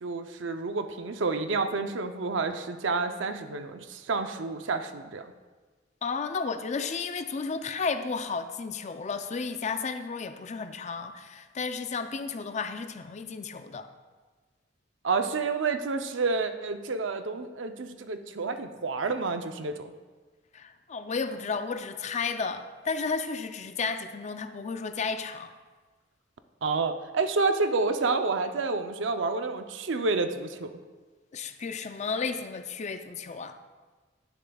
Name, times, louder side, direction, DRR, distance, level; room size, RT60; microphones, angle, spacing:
voice 1, 0.0-5.3 15.0-19.9 26.6-30.7, right 4 dB, 80° right, 8 dB, 0.6 m, -29 dB
voice 2, 6.0-13.9 20.5-25.5 31.3-33.6, left 4 dB, 40° left, 9 dB, 0.5 m, -33 dB
11.0 x 10.0 x 2.3 m, 1.3 s
head